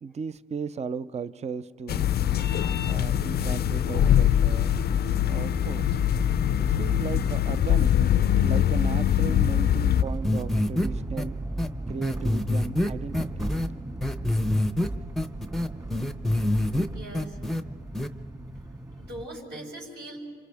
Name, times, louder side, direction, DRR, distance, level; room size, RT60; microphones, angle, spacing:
voice 1, 0.0-2.1 2.8-4.7 5.2-6.0 6.7-7.9 8.4-11.4 11.9-13.6, right 5 dB, 35° right, 15 dB, 0.5 m, -36 dB
sound 1, 1.9-10.0, left 11 dB, 55° left, 0.5 m, -23 dB
sound 2, 2.0-19.2, right 2 dB, 15° right, 1.8 m, -36 dB
sound 3, 10.2-10.9 11.2-11.3 11.6-11.7 12.0-13.7 14.0-14.9 15.2-16.9 17.1-17.6 17.9-18.1, left 1 dB, ahead, 0.7 m, -26 dB
voice 2, 16.9-17.4 19.0-20.2, right 1 dB, 60° right, -1 dB, 5.7 m, -40 dB
29.5 x 26.5 x 3.5 m, 2.1 s
cardioid pair, 90°, 20 cm